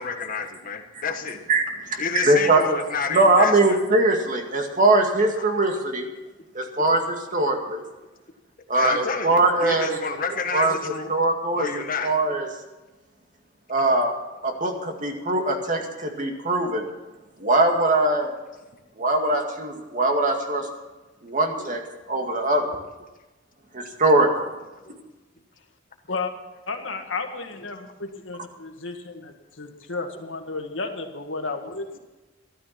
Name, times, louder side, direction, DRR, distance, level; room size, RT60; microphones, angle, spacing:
voice 1, 0.0-1.4 2.0-3.8 5.4-5.5 8.7-11.1 11.5-12.1 14.6-14.8 21.6-21.7 24.8-25.0 30.1-30.2, left 5 dB, 45° left, 5 dB, 1.6 m, -30 dB
voice 2, 1.9-2.6 3.1-6.1 6.6-7.8 8.7-10.0 10.5-11.7 12.0-12.5 13.7-14.1 14.4-16.8 17.4-18.3 19.0-20.6 21.2-21.8 22.1-22.6 23.7-24.3, right 2 dB, 45° right, 3 dB, 2.1 m, -21 dB
voice 3, 26.7-32.0, left 3 dB, 85° left, 5 dB, 1.8 m, -33 dB
13.5 x 12.5 x 5.9 m, 1.1 s
head